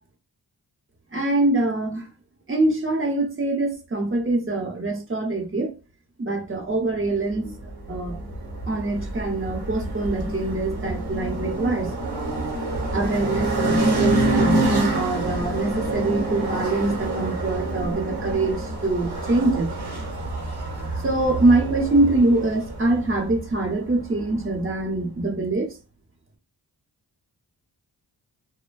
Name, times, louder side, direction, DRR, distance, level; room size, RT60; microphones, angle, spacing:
voice 1, 1.1-2.1 2.5-5.7 6.2-7.5 7.9-8.2 8.7-11.9 12.9-19.7 20.2-25.8, right 2 dB, 30° right, 0.9 m, -24 dB
sound 1, 7.3-24.7, right 2 dB, 80° right, 1.2 m, -27 dB
3.3 x 2.1 x 2.2 m
cardioid pair, 70°, 39 cm